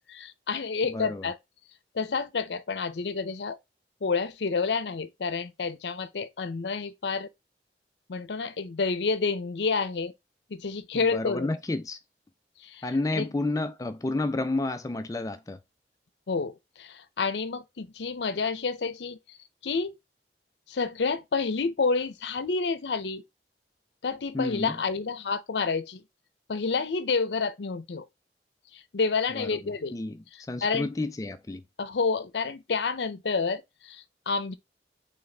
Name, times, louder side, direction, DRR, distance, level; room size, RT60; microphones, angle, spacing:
voice 1, 0.1-1.4 1.9-3.6 4.0-7.3 8.1-10.1 10.5-11.6 12.6-12.8 13.1-13.3 16.3-19.4 19.6-20.0 20.7-23.2 24.0-26.0 26.5-28.1 28.7-29.9 30.3-30.9 31.8-34.5, left 4 dB, 80° left, 0.6 m, -29 dB
voice 2, 0.8-1.3 10.9-12.0 12.8-15.6 24.3-24.8 29.3-29.5 29.9-31.6, left 2 dB, 20° left, 0.3 m, -31 dB
4.1 x 3.4 x 3.3 m
head